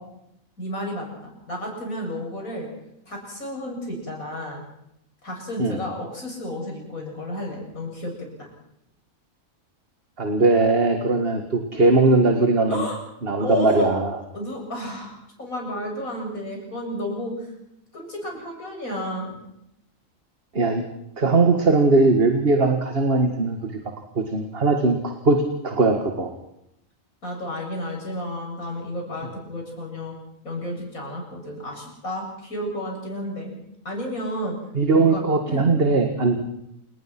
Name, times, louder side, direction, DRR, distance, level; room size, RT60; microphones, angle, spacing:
voice 1, 0.6-2.7 3.1-4.6 5.2-8.5 12.7-13.0 13.4-14.0 14.3-17.5 17.9-19.3 27.2-30.1 30.4-33.5 33.8-34.6 34.9-35.7, left 1 dB, 85° left, 0 dB, 8.3 m, -32 dB
voice 2, 10.2-12.9 13.2-14.2 20.5-20.8 21.2-23.8 24.2-26.3 34.7-36.4, right 3 dB, 45° right, 5 dB, 2.1 m, -20 dB
28.5 x 20.0 x 6.0 m, 0.80 s
omnidirectional pair, 1.4 m